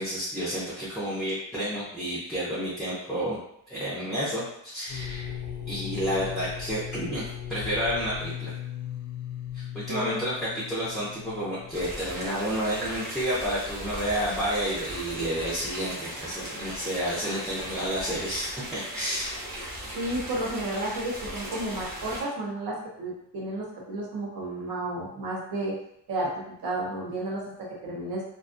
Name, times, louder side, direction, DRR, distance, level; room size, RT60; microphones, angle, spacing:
voice 1, 0.0-3.4 3.7-5.4 5.7-7.2 7.5-8.5 9.5-19.9, equal, ahead, -9 dB, 0.5 m, -30 dB
sound 1, 4.9-12.6, left 9 dB, 55° left, 0.5 m, -38 dB
voice 2, 9.9-10.2 19.9-25.7 26.1-28.2, right 1 dB, 60° right, -3 dB, 0.8 m, -32 dB
sound 2, 11.7-22.2, right 1 dB, 25° right, 0.8 m, -38 dB
2.4 x 2.3 x 2.5 m, 0.74 s
cardioid pair, 155°, 40 cm